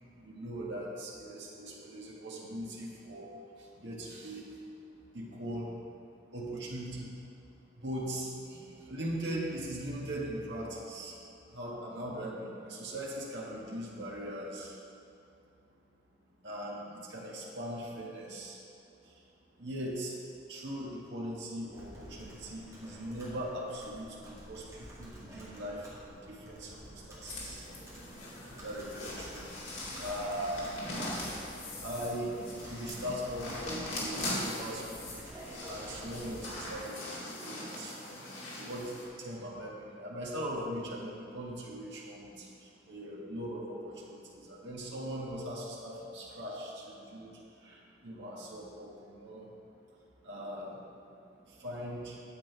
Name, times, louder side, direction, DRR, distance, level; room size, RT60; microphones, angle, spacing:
voice 1, 0.2-4.8 5.1-5.9 6.3-7.1 7.7-11.2 11.5-14.8 16.4-18.7 19.0-19.3 19.5-20.2 20.5-27.7 28.6-29.5 29.9-30.9 31.8-49.5 49.8-49.9 50.2-52.2, equal, 65° right, -5 dB, 1.6 m, -40 dB
Computer keyboard, 21.7-36.7, equal, 15° right, 2.1 m, -50 dB
sound 1, 27.3-39.0, left 1 dB, 80° left, 2.3 m, -41 dB
8.9 x 7.7 x 4.6 m, 2.6 s
head